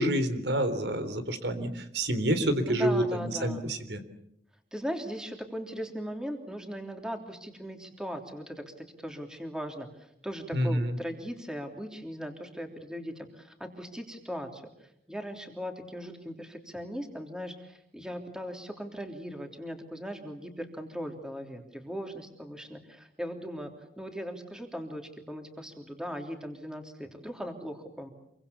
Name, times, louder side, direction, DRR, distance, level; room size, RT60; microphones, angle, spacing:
voice 1, 0.0-4.0 10.5-11.0, right 1 dB, 80° right, 10 dB, 3.6 m, -28 dB
voice 2, 2.7-3.7 4.7-28.1, equal, 5° right, 3 dB, 3.2 m, -39 dB
27.5 x 24.5 x 7.1 m, 0.77 s
head